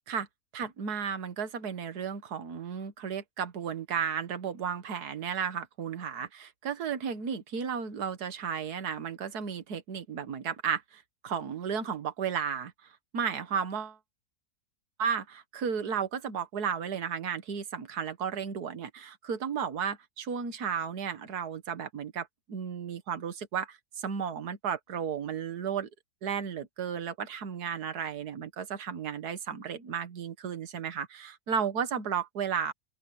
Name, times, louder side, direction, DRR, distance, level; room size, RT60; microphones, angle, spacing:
voice 1, 0.5-12.7 13.1-14.0 15.0-25.9 26.2-32.7, right 7 dB, 70° right, 1.9 m, -34 dB
open air
omnidirectional pair, 1.8 m